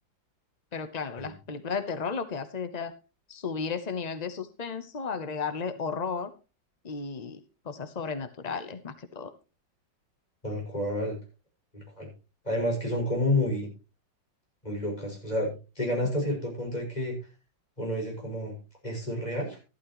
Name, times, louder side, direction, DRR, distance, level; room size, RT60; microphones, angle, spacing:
voice 1, 0.7-2.9 3.3-6.3 6.8-9.3, left 5 dB, 45° left, 9 dB, 0.5 m, -34 dB
voice 2, 10.4-11.2 11.7-12.1 12.4-13.7 14.6-15.5 15.8-17.1 17.8-18.5 18.8-19.6, left 1 dB, 20° left, 0 dB, 6.6 m, -29 dB
14.0 x 12.0 x 3.0 m, 0.30 s
omnidirectional pair, 2.0 m